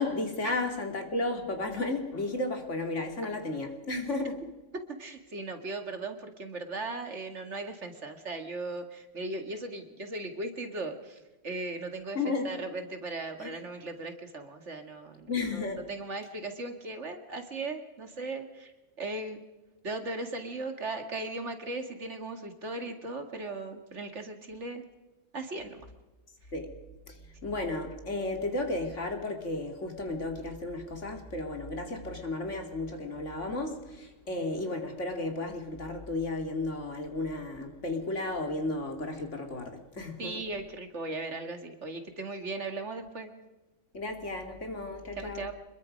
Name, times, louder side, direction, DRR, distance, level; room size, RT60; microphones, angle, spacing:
voice 1, 0.0-4.4 12.1-12.5 13.4-13.6 15.3-15.8 26.5-26.7 27.4-40.4 43.9-45.5, left 2 dB, 60° left, 4 dB, 3.1 m, -33 dB
voice 2, 5.0-11.2 11.4-19.4 19.8-24.8 25.3-25.8 40.2-43.3 45.2-45.5, right 2 dB, 60° right, 6 dB, 2.3 m, -38 dB
26.0 x 22.0 x 5.3 m, 1.1 s
omnidirectional pair, 1.4 m